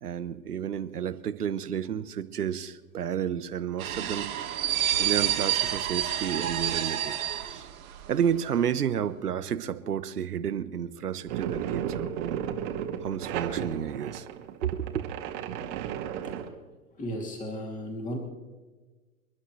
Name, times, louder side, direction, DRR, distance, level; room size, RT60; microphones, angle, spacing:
voice 1, 0.0-4.3 4.6-4.7 5.0-7.1 7.4-7.7 8.1-12.5 13.0-14.3 14.6-15.1, right 8 dB, 85° right, 12 dB, 1.1 m, -31 dB
sound 1, 3.8-8.2 8.4-8.6, right 11 dB, 70° right, 2.6 m, -29 dB
sound 2, 11.3-16.5, right 9 dB, 50° right, 2.2 m, -34 dB
voice 2, 17.0-18.2, equal, 15° left, 1 dB, 2.8 m, -35 dB
29.5 x 11.0 x 3.2 m, 1.3 s
hypercardioid pair, 120°, 45 cm